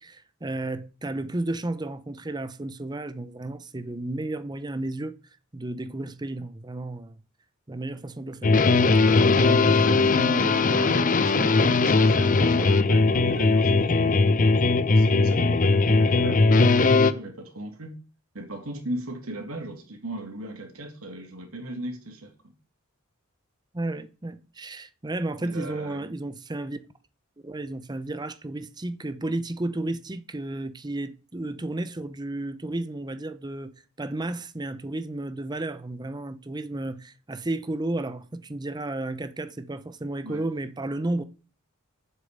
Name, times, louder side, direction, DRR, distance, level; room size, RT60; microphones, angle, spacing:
voice 1, 0.0-5.2 5.5-7.2 7.7-8.5 23.7-26.8 27.4-41.2, right 2 dB, 20° right, 0.7 m, -32 dB
sound 1, 8.4-17.1, left 3 dB, 40° left, 0.6 m, -19 dB
voice 2, 9.2-14.2 14.9-17.9 18.3-22.3 25.4-26.1 40.2-40.4, right 1 dB, 85° right, 2.7 m, -37 dB
7.5 x 6.6 x 8.0 m
head